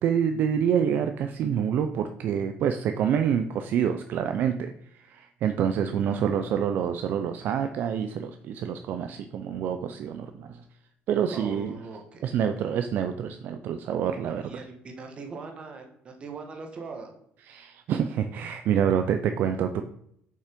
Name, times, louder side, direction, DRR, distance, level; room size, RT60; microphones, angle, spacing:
voice 1, 0.0-10.6 11.1-11.7 12.2-14.6 17.5-19.8, right 8 dB, 55° right, 8 dB, 0.4 m, -27 dB
voice 2, 5.7-6.5 11.3-12.2 14.4-17.1, right 4 dB, 30° right, 3 dB, 1.4 m, -41 dB
6.9 x 5.4 x 5.2 m, 0.73 s
cardioid pair, 165°, 4 cm